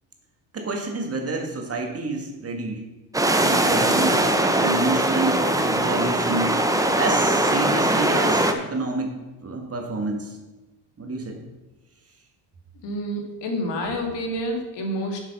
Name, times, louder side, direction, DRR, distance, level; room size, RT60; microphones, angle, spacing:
voice 1, 0.5-2.8 3.4-4.2 4.6-6.6 6.9-9.2 9.4-10.4 11.0-11.4, right 3 dB, 35° right, 2 dB, 1.8 m, -28 dB
sound 1, 3.1-8.5, right 1 dB, 10° right, 0.8 m, -21 dB
voice 2, 12.8-15.2, equal, 75° left, 3 dB, 2.1 m, -28 dB
7.4 x 7.3 x 5.5 m, 1.1 s
cardioid pair, 105°, 42 cm